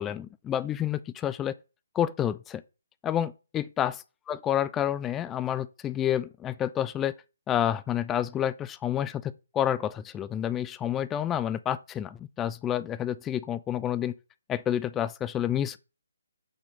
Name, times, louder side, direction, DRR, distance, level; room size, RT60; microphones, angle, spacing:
voice 1, 0.0-1.5 1.9-2.6 3.0-3.9 4.3-7.1 7.5-14.1 14.5-15.8, left 10 dB, 15° left, 0.3 m, -29 dB
5.8 x 3.9 x 5.1 m
figure-of-eight pair, 145°, 0 cm